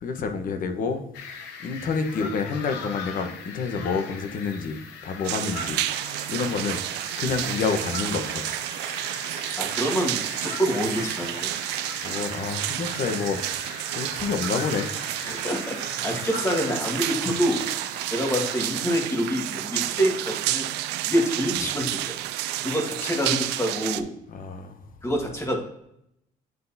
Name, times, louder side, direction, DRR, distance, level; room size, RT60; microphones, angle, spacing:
voice 1, 0.0-1.0 1.6-5.8 6.1-8.4 12.0-13.4 13.7-14.9 21.6-21.7 24.3-24.9, left 5 dB, 55° left, 7 dB, 1.0 m, -29 dB
sound 1, 1.1-18.9, left 5 dB, 90° left, 1.0 m, -40 dB
sound 2, 5.2-24.0, right 14 dB, 90° right, 0.4 m, -30 dB
sound 3, 5.3-18.7, right 3 dB, 20° right, 1.0 m, -46 dB
voice 2, 9.6-11.5 15.2-17.6 18.1-20.7 21.0-22.2 22.6-24.1 25.0-25.6, equal, 15° left, 1 dB, 1.7 m, -26 dB
9.3 x 4.0 x 2.7 m, 0.78 s
cardioid pair, 110°, 17 cm